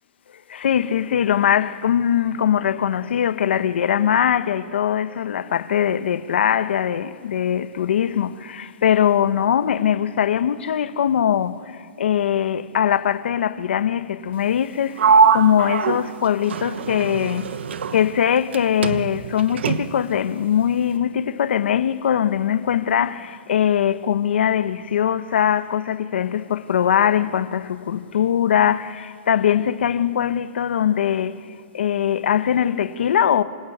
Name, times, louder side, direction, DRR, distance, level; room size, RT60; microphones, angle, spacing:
voice 1, 0.5-17.6 17.9-31.5 31.7-33.4, left 9 dB, 75° left, 1.1 m, -21 dB
Sliding door, 15.0-18.6 18.8-20.1, right 5 dB, 90° right, 1.3 m, -22 dB
27.0 x 25.0 x 8.8 m
hypercardioid pair, 170°, 6 cm